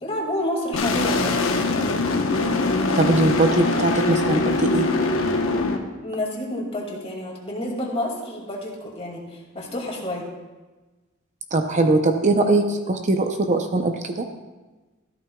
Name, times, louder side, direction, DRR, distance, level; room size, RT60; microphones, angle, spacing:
voice 1, 0.0-1.4 6.0-10.3, left 1 dB, 30° left, -1 dB, 2.2 m, -29 dB
sound 1, 0.7-5.8, left 3 dB, 80° left, 1.0 m, -22 dB
voice 2, 2.9-4.9 11.5-14.3, right 2 dB, 35° right, 5 dB, 0.6 m, -21 dB
13.5 x 12.5 x 2.3 m, 1.2 s
head